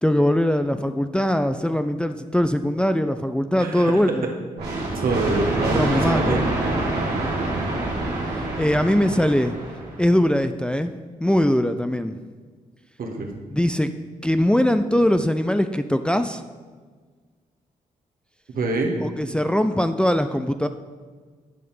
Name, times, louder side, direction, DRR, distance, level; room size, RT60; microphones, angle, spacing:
voice 1, 0.0-4.3 5.7-6.5 8.3-9.5 10.0-12.2 13.5-13.9 14.2-16.4 19.0-20.7, left 1 dB, 5° left, 9 dB, 0.5 m, -21 dB
voice 2, 3.6-4.3 4.9-6.4 13.0-13.3 18.5-19.0, right 2 dB, 65° right, 1 dB, 1.7 m, -25 dB
sound 1, 4.6-10.2, right 2 dB, 85° right, 1.8 m, -26 dB
9.3 x 5.8 x 5.5 m, 1.5 s
supercardioid pair, 40°, 16 cm